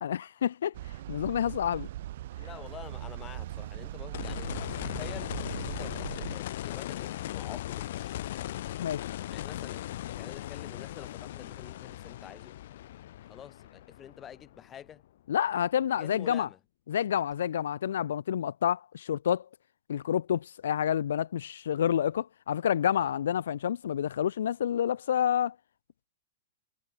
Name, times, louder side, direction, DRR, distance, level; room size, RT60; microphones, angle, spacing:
voice 1, 0.0-1.9 8.8-9.1 15.3-16.5 16.9-19.5 19.9-25.5, left 9 dB, 80° left, 0.4 m, -29 dB
sound 1, 0.7-6.4, right 14 dB, 50° right, 1.4 m, -40 dB
voice 2, 2.4-8.4 9.3-12.5 13.3-15.0 15.9-16.6 22.9-23.1, left 9 dB, 15° left, 5.2 m, -48 dB
sound 2, 4.1-15.0 17.3-17.4, left 13 dB, 50° left, 1.8 m, -38 dB
supercardioid pair, 170°, 0 cm